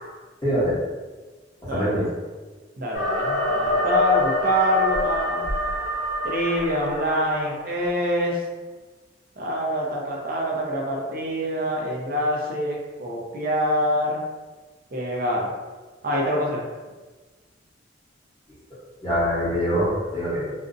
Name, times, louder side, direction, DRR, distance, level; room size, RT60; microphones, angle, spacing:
voice 1, 0.4-0.7 1.7-2.0 19.0-20.5, equal, 20° left, -11 dB, 0.9 m, -23 dB
voice 2, 1.7-2.0 2.8-5.4 6.2-8.4 9.4-14.2 14.9-15.5 16.0-16.6, equal, 50° right, -2 dB, 0.5 m, -25 dB
sound 1, 2.9-7.8, left 1 dB, 65° left, 0.6 m, -26 dB
2.5 x 2.0 x 2.5 m, 1.3 s
head